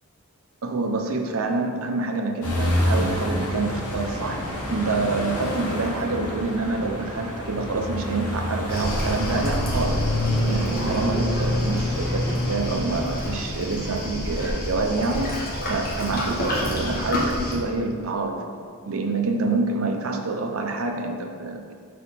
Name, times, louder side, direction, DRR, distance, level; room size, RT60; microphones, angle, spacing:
voice 1, 0.6-10.1 10.5-15.4 15.7-18.5 18.9-21.7, right 3 dB, 65° right, 4 dB, 0.6 m, -27 dB
sound 1, 2.4-13.4, left 1 dB, 90° left, 1.0 m, -27 dB
Waves surf, 8.7-17.5, equal, 40° left, 1.2 m, -29 dB
4.2 x 4.1 x 5.6 m, 2.1 s
head